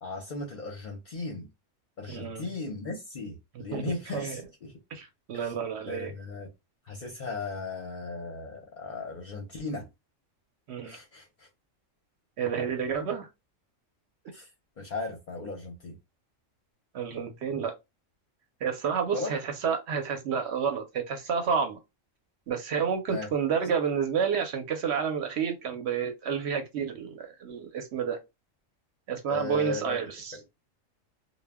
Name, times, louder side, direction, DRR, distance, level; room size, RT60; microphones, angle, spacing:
voice 1, 0.0-1.5 2.0-4.7 5.3-5.5 5.8-6.5 6.9-9.9 10.8-11.5 14.3-14.5 14.8-16.0 19.1-19.3 23.1-23.3 29.3-30.0 30.3-30.4, left 3 dB, 50° left, 0.6 m, -36 dB
voice 2, 2.1-2.5 3.7-3.8 4.1-4.4 4.9-6.1 10.7-11.0 12.4-13.3 16.9-17.7 18.6-21.8 22.5-28.2 29.1-30.3, right 7 dB, 65° right, 0.8 m, -30 dB
2.1 x 2.1 x 3.4 m
omnidirectional pair, 1.3 m